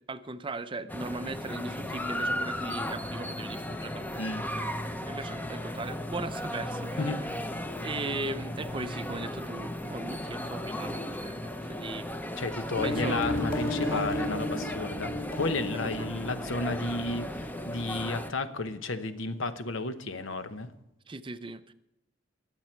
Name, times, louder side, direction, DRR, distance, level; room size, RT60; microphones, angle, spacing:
voice 1, 0.1-4.0 4.6-4.7 5.1-7.1 7.8-12.1 12.8-13.3 13.9-14.0 15.8-16.1 21.1-21.7, right 3 dB, 25° right, 11 dB, 0.6 m, -38 dB
sound 1, 0.9-18.3, left 1 dB, 10° left, 0.7 m, -36 dB
voice 2, 12.4-20.7, left 3 dB, 70° left, 11 dB, 1.0 m, -33 dB
sound 2, 12.8-18.2, left 1 dB, 45° left, 3.7 m, -34 dB
22.0 x 7.6 x 4.5 m, 0.87 s
head